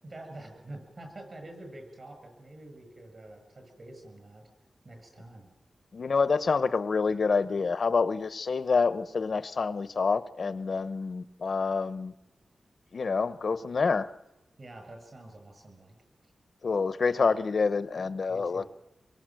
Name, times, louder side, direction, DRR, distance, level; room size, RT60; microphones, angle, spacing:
voice 1, 0.0-4.5 4.8-5.5 14.6-16.0 16.2-16.3 18.3-18.7, right 1 dB, 40° right, 5 dB, 7.6 m, -47 dB
voice 2, 5.9-12.1 12.9-14.1 16.6-18.7, left 4 dB, 60° left, 13 dB, 0.8 m, -27 dB
26.5 x 23.0 x 7.7 m, 0.92 s
wide cardioid pair, 115°, 0 cm